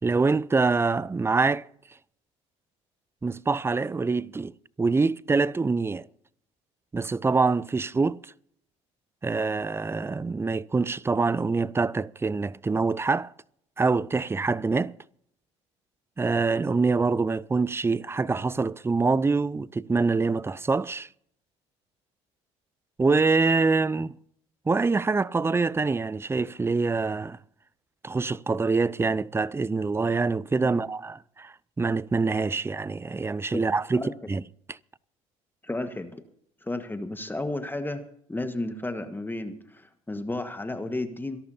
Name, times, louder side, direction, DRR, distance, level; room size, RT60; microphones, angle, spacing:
voice 1, 0.0-1.7 3.2-4.5 4.8-6.1 6.9-8.2 9.2-13.3 13.8-14.9 16.2-21.1 23.0-24.2 24.7-27.4 28.0-34.4 34.7-34.8, right 4 dB, 15° right, 0.5 m, -25 dB
voice 2, 35.6-36.2 36.6-41.4, left 2 dB, 15° left, 1.5 m, -33 dB
26.5 x 11.5 x 2.8 m
hypercardioid pair, 65°, 16 cm